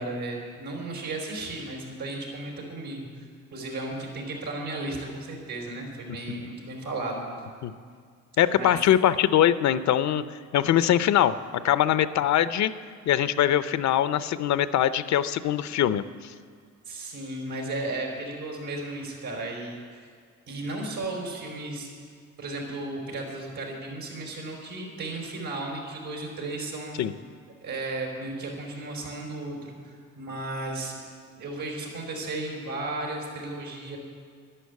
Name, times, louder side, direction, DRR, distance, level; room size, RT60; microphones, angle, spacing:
voice 1, 0.0-3.2 3.5-7.3 8.5-8.8 16.9-19.8 20.5-21.9 22.4-27.0 27.6-31.0 31.3-34.0, right 2 dB, 80° right, 0 dB, 4.3 m, -34 dB
voice 2, 8.4-10.2 10.5-12.7 13.1-16.3 27.0-27.1, left 11 dB, 65° left, 14 dB, 0.6 m, -22 dB
11.5 x 11.0 x 8.3 m, 2.1 s
cardioid pair, 90°, 30 cm